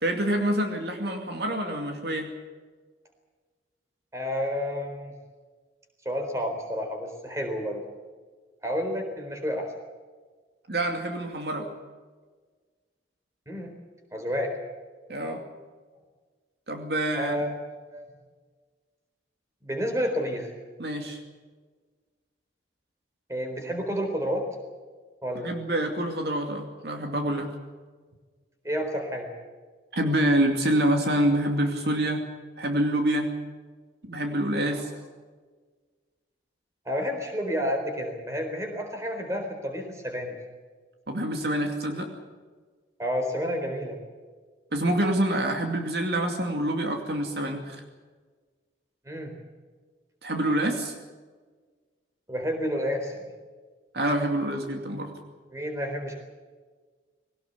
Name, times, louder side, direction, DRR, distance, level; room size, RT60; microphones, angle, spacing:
voice 1, 0.0-2.3 10.7-11.7 15.1-15.4 16.7-17.5 20.8-21.2 25.3-27.6 29.9-32.3 32.6-33.3 34.0-34.9 41.1-42.1 44.7-47.8 50.2-50.9 53.9-55.1, right 1 dB, 60° right, 3 dB, 2.5 m, -26 dB
voice 2, 4.1-5.1 6.1-7.8 8.6-9.7 13.5-13.7 14.1-14.5 17.1-17.6 17.9-18.0 19.6-20.5 23.3-24.5 25.2-25.5 28.6-29.3 34.6-34.8 36.8-40.3 43.0-44.0 49.1-49.3 52.3-53.2 55.5-56.2, equal, 15° right, 4 dB, 4.0 m, -30 dB
21.5 x 18.0 x 8.3 m, 1.4 s
head